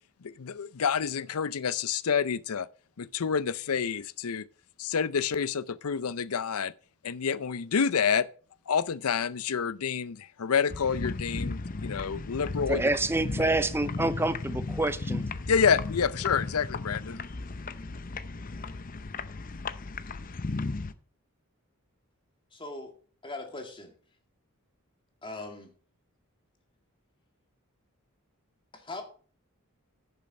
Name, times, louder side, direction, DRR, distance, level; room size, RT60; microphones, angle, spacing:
voice 1, 0.2-2.7 3.0-4.5 4.8-6.7 7.0-8.3 8.7-12.8 15.5-17.2, left 6 dB, 80° left, 0.6 m, -28 dB
sound 1, 10.7-20.9, left 3 dB, 40° left, 0.6 m, -35 dB
voice 2, 12.7-15.2, right 2 dB, 10° right, 0.5 m, -27 dB
voice 3, 22.5-22.9 23.2-23.9 25.2-25.7 28.7-29.0, left 2 dB, 25° left, 2.0 m, -40 dB
10.5 x 6.9 x 5.3 m
head